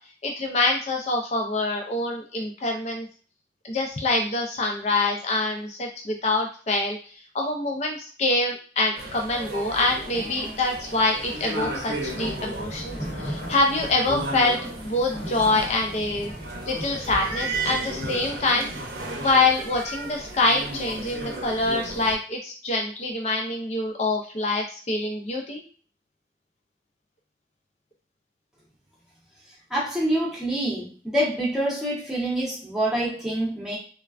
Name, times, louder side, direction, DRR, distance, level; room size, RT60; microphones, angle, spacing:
voice 1, 0.2-3.1 3.6-7.0 7.3-14.6 14.8-16.3 16.6-18.7 19.2-25.6, left 2 dB, 40° left, 2 dB, 0.4 m, -25 dB
sound 1, 9.0-22.2, right 2 dB, 55° right, 0.6 m, -34 dB
sound 2, 11.9-18.3, equal, 80° left, 1.3 m, -38 dB
voice 2, 29.7-33.8, right 1 dB, 5° right, -6 dB, 0.8 m, -26 dB
3.2 x 2.1 x 2.4 m, 0.41 s
head